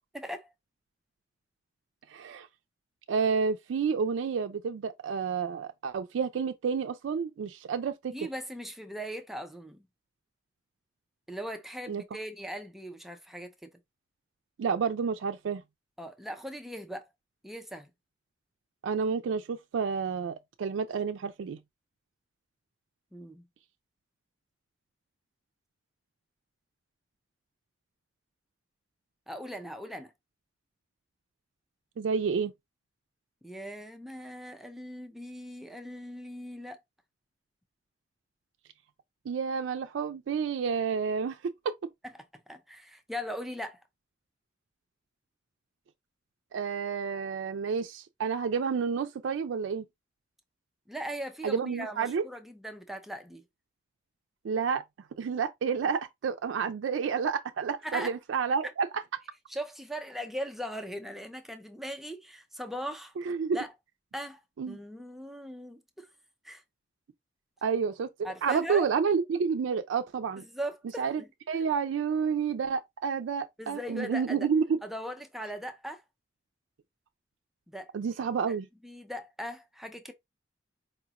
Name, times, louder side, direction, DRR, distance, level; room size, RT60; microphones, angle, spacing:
voice 1, 0.1-0.5 8.1-9.8 11.3-13.7 16.0-17.0 17.4-17.9 23.1-23.4 29.3-30.1 33.4-36.8 42.0-42.1 42.5-43.8 50.9-53.4 57.8-58.1 59.5-63.1 63.5-63.7 64.1-64.4 64.7-66.1 66.4-66.6 68.2-68.9 70.4-71.3 73.6-74.5 74.8-76.0 77.7-77.9 78.5-78.6 78.8-80.1, equal, ahead, 0.5 m, -39 dB
voice 2, 2.1-2.5 3.1-8.1 11.9-12.0 14.6-15.6 18.8-21.6 32.0-32.5 39.3-41.4 46.5-49.9 51.4-52.2 54.4-54.8 55.2-58.9 63.2-63.6 64.6-64.8 67.6-68.1 68.4-70.4 71.0-71.2 71.5-74.8 77.9-78.7, right 6 dB, 85° right, 0.4 m, -30 dB
4.8 x 2.4 x 2.8 m
head